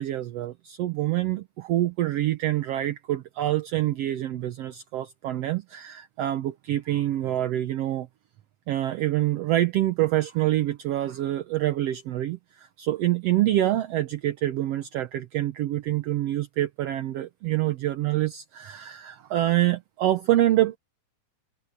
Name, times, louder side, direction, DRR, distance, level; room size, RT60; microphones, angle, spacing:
voice 1, 0.0-8.1 8.7-20.8, right 14 dB, 70° right, 1.7 m, -26 dB
omnidirectional pair, 3.4 m